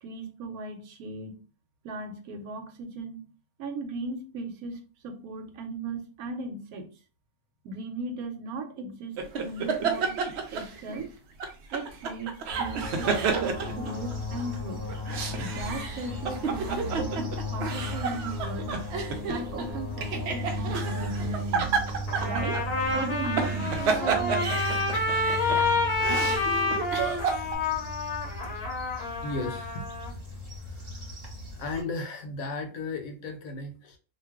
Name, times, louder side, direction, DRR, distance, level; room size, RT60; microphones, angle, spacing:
voice 1, 0.0-1.4 1.8-3.3 3.6-6.9 7.6-10.2 10.5-11.1 11.7-14.8 15.4-18.7 19.2-21.8 22.2-22.6 22.9-23.8, right 2 dB, 85° right, 6 dB, 1.1 m, -37 dB
sound 1, 9.2-11.0 11.4-14.4 14.9-27.6, right 5 dB, 65° right, 0.7 m, -31 dB
sound 2, 12.5-31.8, equal, 35° right, 1.1 m, -36 dB
Trumpet, 22.1-30.1, left 3 dB, 50° left, 0.8 m, -29 dB
voice 2, 29.2-29.8 30.6-31.1 31.5-34.0, left 3 dB, 75° left, 4 dB, 1.1 m, -35 dB
2.5 x 2.3 x 3.4 m, 0.36 s
omnidirectional pair, 1.5 m